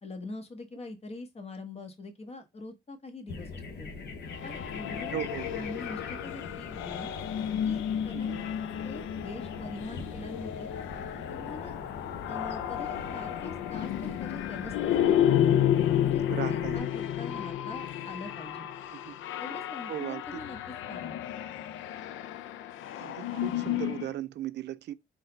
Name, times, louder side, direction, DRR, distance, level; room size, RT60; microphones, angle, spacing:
voice 1, 0.0-3.9 4.4-7.1 7.6-8.3 8.8-10.7 11.3-11.8 12.3-15.0 15.9-18.7 19.4-20.6 20.9-21.1, left 2 dB, 30° left, 1.1 m, -43 dB
sound 1, 3.3-16.8, left 4 dB, 55° left, 0.9 m, -42 dB
sound 2, 4.3-24.1, left 10 dB, 80° left, 0.4 m, -31 dB
voice 2, 5.1-5.5 8.1-8.4 16.3-16.9 18.9-19.2 19.9-20.2 23.0-24.9, right 12 dB, 60° right, 0.4 m, -37 dB
3.9 x 2.2 x 3.8 m
cardioid pair, 90°, 20 cm